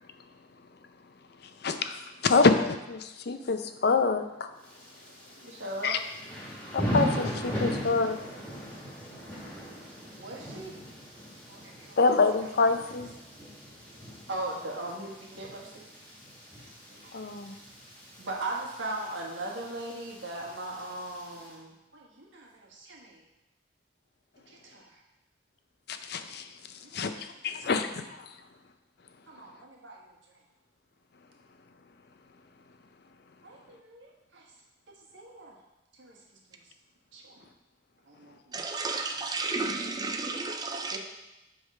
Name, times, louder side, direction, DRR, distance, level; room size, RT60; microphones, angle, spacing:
voice 1, 1.6-4.5 5.8-6.0 6.7-8.2 12.0-13.1 17.1-17.5 25.9-26.5 26.9-28.0, left 4 dB, 60° left, 8 dB, 0.5 m, -26 dB
Thunder / Rain, 4.6-21.5, equal, 5° left, 1.8 m, -39 dB
voice 2, 5.4-6.0 9.1-9.2 9.5-9.8 10.2-10.8 11.5-12.0 13.9-15.8 17.0-17.3 18.2-23.2 24.5-25.0 26.8-27.9 29.3-30.4 33.4-34.4 35.1-35.6 35.9-36.2 36.5-36.6 37.1-37.4 38.1-38.5 40.9-41.0, right 2 dB, 85° right, -2 dB, 1.5 m, -40 dB
voice 3, 38.5-41.0, right 3 dB, 20° right, 4 dB, 0.4 m, -32 dB
8.0 x 3.5 x 5.5 m, 0.95 s
head